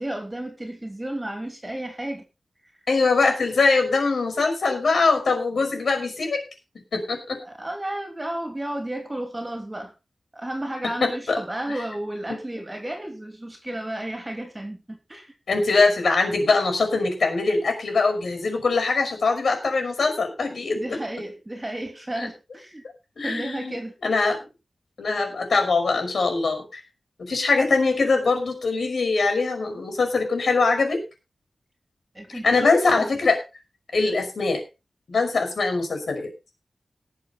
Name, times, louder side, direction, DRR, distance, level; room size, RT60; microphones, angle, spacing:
voice 1, 0.0-2.3 7.4-9.9 10.3-15.3 20.7-22.8 23.2-24.0 32.1-33.1, right 1 dB, 20° right, 4 dB, 2.9 m, -33 dB
voice 2, 2.9-6.4 6.9-7.4 11.0-11.4 11.7-11.8 15.5-20.8 22.2-22.3 23.2-24.4 25.0-26.8 27.2-31.0 32.3-33.4 33.9-34.6 35.1-36.3, left 3 dB, 80° left, 6 dB, 5.5 m, -22 dB
19.0 x 7.2 x 4.3 m, 0.29 s
wide cardioid pair, 110°, 0 cm